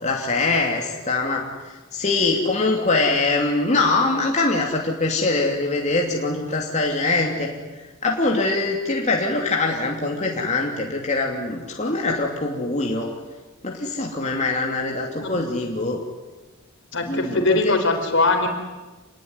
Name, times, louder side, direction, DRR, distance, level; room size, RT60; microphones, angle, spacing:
voice 1, 0.0-1.5 1.9-7.5 8.0-13.1 13.6-16.0 17.1-17.7, left 3 dB, 35° left, 0 dB, 2.9 m, -23 dB
voice 2, 16.9-18.5, left 3 dB, 60° left, 5 dB, 4.2 m, -21 dB
27.5 x 21.0 x 9.7 m, 1.2 s
head